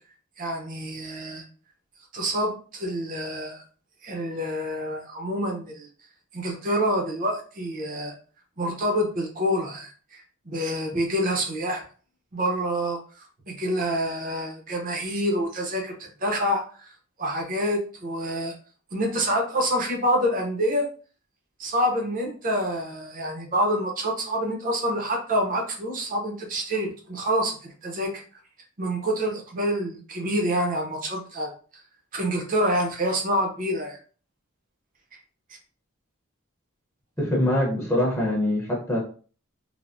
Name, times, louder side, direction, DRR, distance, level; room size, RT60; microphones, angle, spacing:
voice 1, 0.4-1.4 2.1-3.6 4.0-5.9 6.3-8.1 8.6-11.8 12.3-16.9 17.2-18.5 18.9-20.9 21.6-28.2 28.8-31.5 32.1-34.0, equal, 40° right, 1 dB, 0.6 m, -27 dB
voice 2, 37.2-39.0, left 1 dB, 10° left, -3 dB, 0.7 m, -23 dB
3.3 x 2.0 x 2.5 m, 0.40 s
head